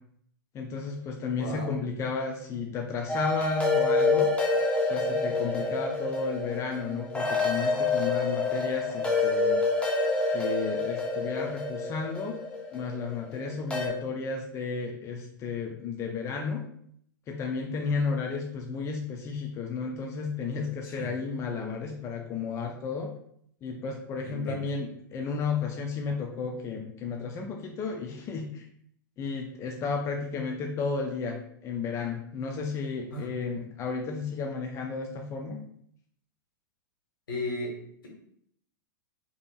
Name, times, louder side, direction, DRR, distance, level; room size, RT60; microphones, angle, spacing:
voice 1, 0.5-4.3 4.9-9.6 10.3-12.4 12.7-16.6 17.3-23.1 23.6-28.7 29.2-35.6, left 5 dB, 25° left, 2 dB, 0.5 m, -33 dB
voice 2, 1.3-1.7 20.8-21.1 24.2-24.6 33.1-33.3 37.3-38.1, left 1 dB, 75° left, -2 dB, 1.5 m, -36 dB
sound 1, 3.1-13.9, left 3 dB, 10° left, 0.8 m, -27 dB
5.1 x 2.9 x 2.3 m, 0.68 s
figure-of-eight pair, 100°, 12 cm